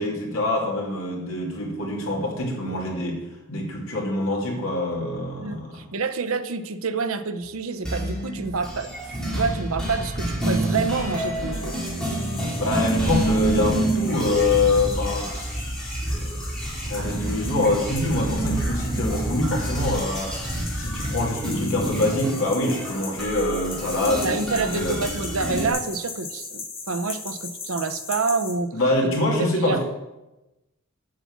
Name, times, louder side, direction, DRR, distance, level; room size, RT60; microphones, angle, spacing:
voice 1, 0.0-3.2 3.5-5.8 12.4-15.3 16.6-20.3 20.7-25.0 28.7-29.8, left 2 dB, 70° left, -2 dB, 2.7 m, -25 dB
voice 2, 5.4-8.9 9.2-11.8 24.2-28.7 29.0-29.1 29.4-29.8, right 4 dB, 75° right, 9 dB, 0.7 m, -28 dB
sound 1, 7.8-25.7, right 1 dB, 5° left, 2.3 m, -28 dB
sound 2, 11.5-28.6, left 4 dB, 25° left, 1.3 m, -39 dB
7.5 x 7.3 x 7.2 m, 1.0 s
head